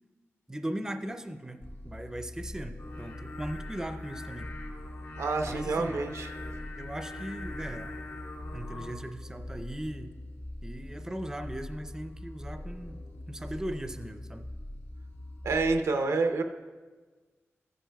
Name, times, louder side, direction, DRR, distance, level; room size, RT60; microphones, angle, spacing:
voice 1, 0.5-4.5 5.4-6.0 6.7-8.1 8.5-10.1 10.6-13.0 13.3-14.5, right 1 dB, 10° right, 9 dB, 0.4 m, -38 dB
sound 1, 1.6-15.8, left 1 dB, 60° left, 1.5 m, -43 dB
Singing, 2.8-8.9, left 2 dB, 75° left, 1.1 m, -44 dB
voice 2, 5.2-6.3 15.4-16.4, right 3 dB, 85° right, 5 dB, 0.6 m, -28 dB
14.0 x 10.0 x 2.2 m, 1.4 s
wide cardioid pair, 90°, 5 cm